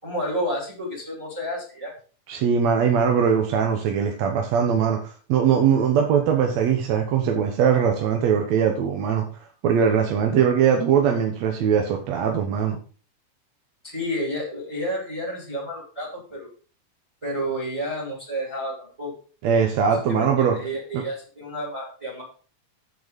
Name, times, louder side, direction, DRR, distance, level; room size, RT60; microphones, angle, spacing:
voice 1, 0.0-1.9 13.8-16.5 17.2-19.1 20.1-22.2, equal, 10° right, -2 dB, 2.7 m, -30 dB
voice 2, 2.3-9.3 9.6-12.8 19.4-20.6 20.9-21.0, right 7 dB, 65° right, 3 dB, 2.1 m, -21 dB
7.9 x 7.8 x 5.2 m, 0.38 s
omnidirectional pair, 3.7 m